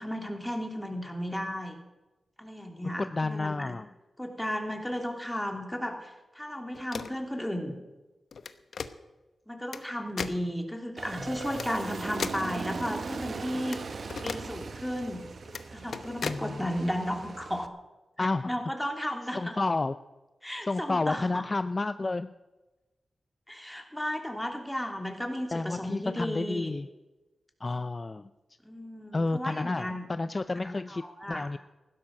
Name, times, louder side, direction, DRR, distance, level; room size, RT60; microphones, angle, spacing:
voice 1, 0.0-1.8 2.4-3.7 4.2-7.8 9.5-13.8 14.2-15.2 15.7-17.7 18.2-19.6 20.4-21.5 23.5-26.7 28.6-30.1 30.6-31.5, equal, 5° left, 4 dB, 3.1 m, -34 dB
voice 2, 2.8-3.9 11.2-11.3 16.2-16.7 18.2-18.5 19.3-20.0 20.7-22.3 25.5-26.9 27.6-28.3 29.1-31.0 31.3-31.6, left 3 dB, 40° left, 12 dB, 0.6 m, -30 dB
sound 1, 6.7-7.2 8.3-8.9 9.7-9.8 10.2-10.4 11.6-11.7 12.2-12.5 13.7-13.8 14.1-14.4 15.5-15.6 15.9-16.4, left 5 dB, 75° left, 0.9 m, -36 dB
Aircraft, 11.0-17.7, right 4 dB, 65° right, 0.9 m, -39 dB
15.5 x 12.0 x 6.5 m, 1.1 s
cardioid pair, 55°, 0 cm